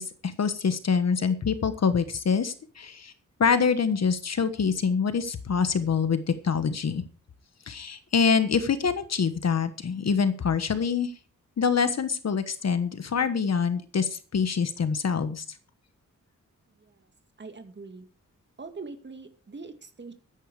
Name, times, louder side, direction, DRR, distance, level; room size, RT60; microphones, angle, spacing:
voice 1, 0.0-3.1 3.4-7.0 7.7-11.1 11.6-15.4, left 6 dB, 55° left, 11 dB, 1.3 m, -25 dB
voice 2, 16.7-17.1 17.4-18.1 18.6-20.1, right 4 dB, 35° right, 7 dB, 2.3 m, -43 dB
14.0 x 10.0 x 4.9 m, 0.36 s
wide cardioid pair, 140°, 31 cm